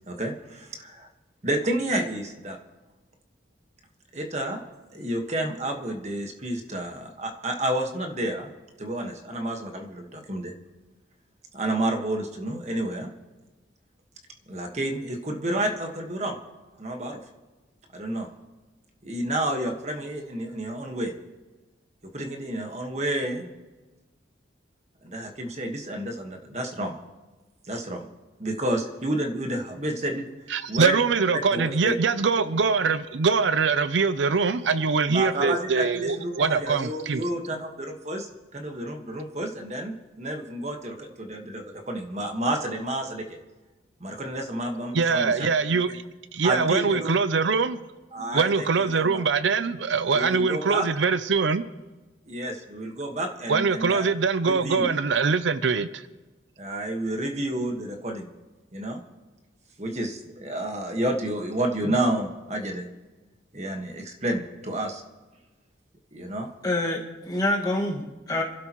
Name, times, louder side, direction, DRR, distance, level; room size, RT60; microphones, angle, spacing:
voice 1, 0.1-1.1 1.4-2.6 4.1-4.6 4.9-8.5 8.8-10.5 11.5-13.1 14.5-16.4 16.8-17.2 17.9-18.3 19.0-21.1 22.1-23.5 25.0-26.9 27.7-28.1 28.4-30.3 30.7-30.9 31.3-32.0 35.1-43.4 44.0-45.5 46.4-47.2 48.1-49.2 50.1-50.9 52.3-54.0 54.4-54.9 56.6-58.3 58.7-59.0 59.8-62.8 63.5-65.0 66.1-66.5, right 1 dB, 35° right, 1.5 m, -30 dB
voice 2, 30.5-37.2 44.9-46.0 46.3-47.8 48.3-51.6 53.5-56.0, right 5 dB, 85° right, 0.6 m, -23 dB
voice 3, 66.6-68.4, left 1 dB, 20° left, 1.8 m, -26 dB
26.5 x 12.0 x 3.1 m
head